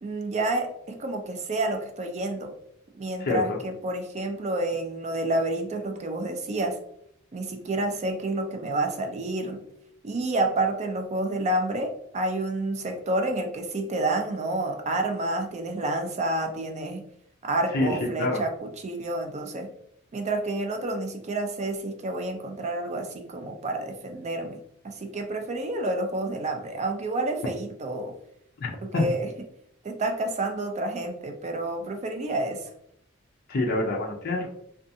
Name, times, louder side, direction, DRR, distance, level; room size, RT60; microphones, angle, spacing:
voice 1, 0.0-2.5 2.9-6.8 7.3-9.6 10.0-17.1 17.4-19.7 20.1-24.6 24.8-28.2 28.8-29.3 29.8-32.7, right 2 dB, 30° right, 4 dB, 0.4 m, -29 dB
voice 2, 17.7-18.4 28.6-29.1 33.5-34.5, left 2 dB, 45° left, 1 dB, 0.5 m, -26 dB
2.5 x 2.3 x 2.6 m, 0.72 s
head